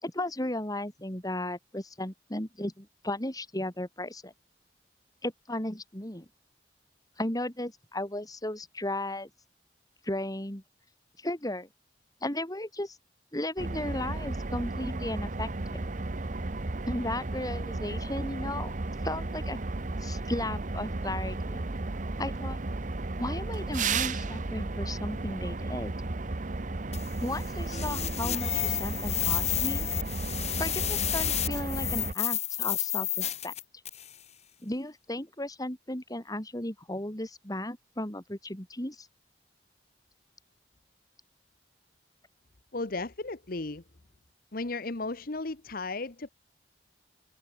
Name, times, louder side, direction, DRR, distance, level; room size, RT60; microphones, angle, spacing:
voice 1, 0.0-4.3 5.2-6.3 7.2-9.3 10.0-10.6 11.2-11.7 12.2-13.0 13.3-15.8 16.9-18.7 19.0-19.6 20.0-21.6 22.2-22.6 23.2-25.9 27.2-29.9 30.6-33.5 34.6-39.1, left 1 dB, 20° left, 4.2 m, -35 dB
sound 1, 13.6-32.1, right 2 dB, 45° right, 1.0 m, -34 dB
sound 2, 26.9-34.1, left 12 dB, 40° left, 2.4 m, -31 dB
voice 2, 42.7-43.8 44.5-46.3, left 3 dB, 55° left, 1.2 m, -35 dB
open air
head